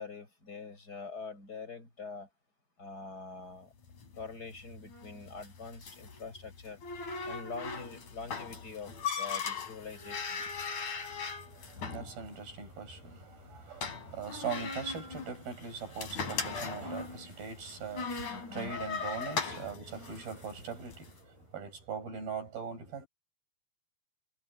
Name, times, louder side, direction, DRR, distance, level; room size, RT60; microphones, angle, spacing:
voice 1, 0.0-2.3 2.8-3.7 4.1-6.8 7.2-10.4 19.5-19.7, left 4 dB, 25° left, 5.5 m, -44 dB
sound 1, 3.8-21.1, left 5 dB, 55° left, 5.2 m, -39 dB
voice 2, 11.4-23.1, right 6 dB, 80° right, 9.0 m, -41 dB
omnidirectional pair, 4.2 m